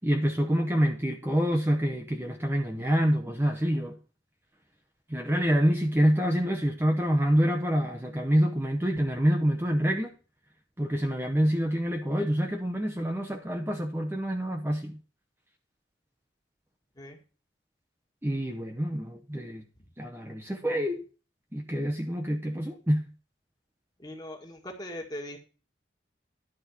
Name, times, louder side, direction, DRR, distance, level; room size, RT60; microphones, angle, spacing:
voice 1, 0.0-4.0 5.1-10.1 10.8-15.0 18.2-19.6 20.0-21.0 21.5-23.1, equal, 10° right, 0.8 m, -26 dB
voice 2, 24.0-25.4, left 1 dB, 20° left, 1.8 m, -40 dB
11.0 x 4.4 x 7.2 m
head